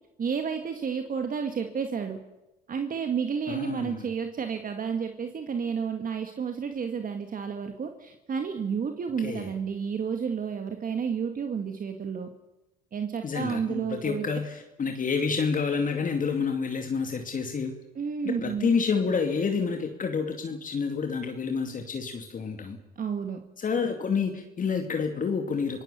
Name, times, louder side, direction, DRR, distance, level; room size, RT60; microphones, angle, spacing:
voice 1, 0.2-2.2 2.7-12.3 12.9-14.3 18.0-18.7 23.0-23.4, right 6 dB, 45° right, 5 dB, 2.0 m, -31 dB
voice 2, 3.5-3.8 9.2-9.4 13.2-14.4 14.8-17.7 18.4-22.8 23.6-25.8, left 5 dB, 40° left, 4 dB, 2.4 m, -28 dB
27.5 x 17.5 x 6.9 m, 1.0 s
supercardioid pair, 75°, 21 cm